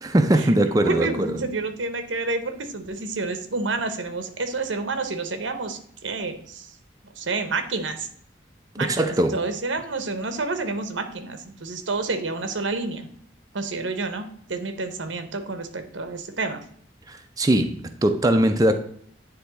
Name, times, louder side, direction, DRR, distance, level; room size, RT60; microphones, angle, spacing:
voice 1, 0.0-1.4 8.8-9.4 17.1-18.8, right 1 dB, 20° right, 0.4 m, -21 dB
voice 2, 0.8-6.7 7.2-8.1 8.8-13.1 13.5-16.6, right 3 dB, 90° right, 1.0 m, -29 dB
9.5 x 3.5 x 4.0 m
head